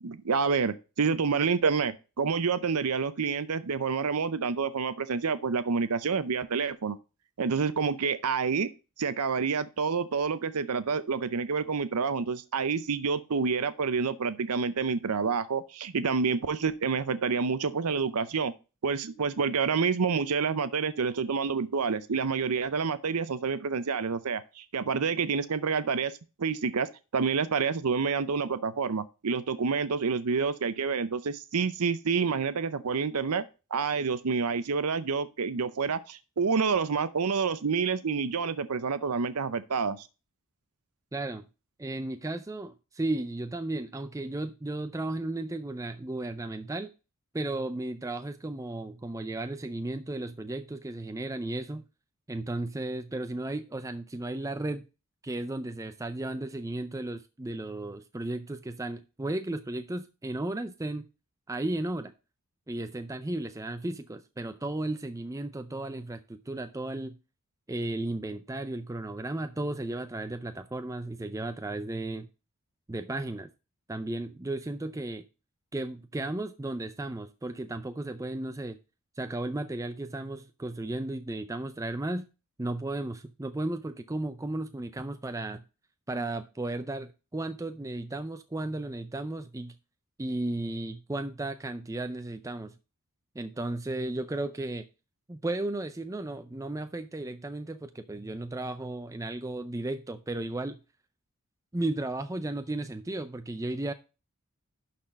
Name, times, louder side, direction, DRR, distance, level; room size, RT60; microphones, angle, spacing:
voice 1, 0.0-7.0 7.4-8.7 9.0-18.5 18.8-26.1 26.4-33.4 33.7-40.1, right 5 dB, 80° right, 0.7 m, -28 dB
voice 2, 41.1-41.4 41.8-46.9 47.3-51.8 52.3-54.8 55.2-61.0 61.5-62.1 62.7-67.2 67.7-72.3 72.9-73.5 73.9-75.2 75.7-78.8 79.2-82.3 82.6-85.6 86.1-89.7 90.2-92.7 93.4-94.8 95.3-100.8 101.7-103.9, right 2 dB, 15° right, 0.5 m, -34 dB
11.5 x 4.3 x 5.2 m
head